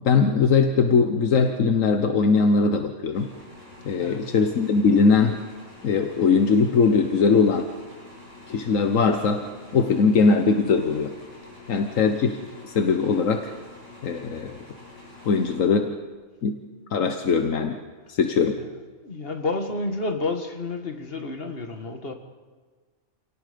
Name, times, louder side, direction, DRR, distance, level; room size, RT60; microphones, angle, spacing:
voice 1, 0.0-3.3 3.8-5.4 5.8-7.7 8.5-9.4 9.7-11.1 11.7-13.5 14.0-14.6 15.2-15.9 16.4-16.6 16.9-17.8 18.1-18.6, left 5 dB, 80° left, 1.4 m, -20 dB
sound 1, 3.1-16.1, left 2 dB, 35° right, 8.2 m, -47 dB
voice 2, 3.9-4.3 18.6-18.7 19.0-22.1, left 3 dB, 45° left, 1.9 m, -30 dB
27.5 x 18.5 x 5.2 m
omnidirectional pair, 1.3 m